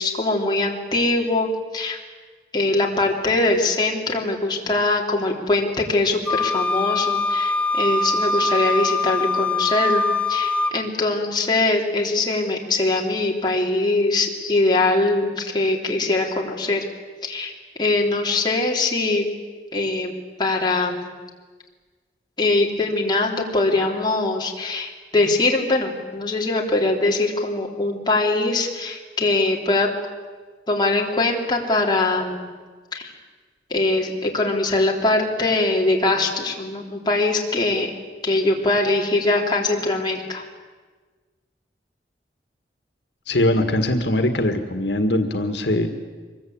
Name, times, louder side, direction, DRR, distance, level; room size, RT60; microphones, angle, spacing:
voice 1, 0.0-2.0 2.5-10.0 10.3-16.9 17.2-17.5 17.8-19.3 19.7-20.1 20.4-21.1 22.4-29.9 30.7-32.5 32.9-33.1 33.7-37.9 38.2-40.4, left 2 dB, 25° left, -1 dB, 3.4 m, -22 dB
Wind instrument woodwind instrument, 6.3-10.8, left 3 dB, 10° left, 0.7 m, -22 dB
voice 2, 43.3-45.9, left 1 dB, 80° left, 7 dB, 1.8 m, -21 dB
24.5 x 22.0 x 8.8 m, 1.4 s
head